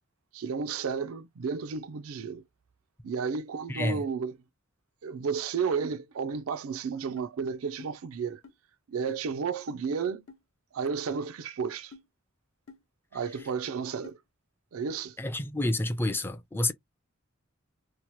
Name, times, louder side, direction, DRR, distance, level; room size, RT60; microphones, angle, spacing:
voice 1, 0.3-2.4 3.0-4.4 5.0-8.4 8.9-10.3 10.7-11.9 13.1-14.2 14.7-15.2, right 5 dB, 80° right, 0.4 m, -32 dB
voice 2, 3.7-4.0 15.2-16.7, left 1 dB, 10° left, 0.3 m, -29 dB
sound 1, 7.2-7.3 7.8-7.9 8.4-8.5 9.1-9.2 9.7-9.8 10.3-10.4 11.1-11.2 11.9-12.1 12.7-12.8 13.4-13.5 14.0-14.2, left 4 dB, 70° left, 0.7 m, -48 dB
2.9 x 2.0 x 3.0 m
head